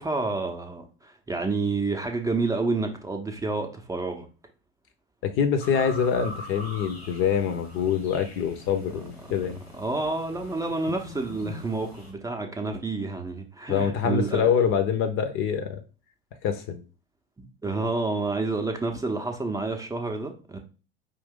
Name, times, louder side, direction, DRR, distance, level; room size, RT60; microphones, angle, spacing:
voice 1, 0.0-4.3 9.7-14.4 17.4-20.6, right 3 dB, 10° right, 0.7 m, -29 dB
voice 2, 5.2-9.6 13.7-15.8 16.4-16.8, left 7 dB, 40° left, 0.8 m, -25 dB
sound 1, 5.6-12.1, left 2 dB, 90° left, 1.6 m, -42 dB
5.3 x 2.7 x 3.6 m
figure-of-eight pair, 80°, 31 cm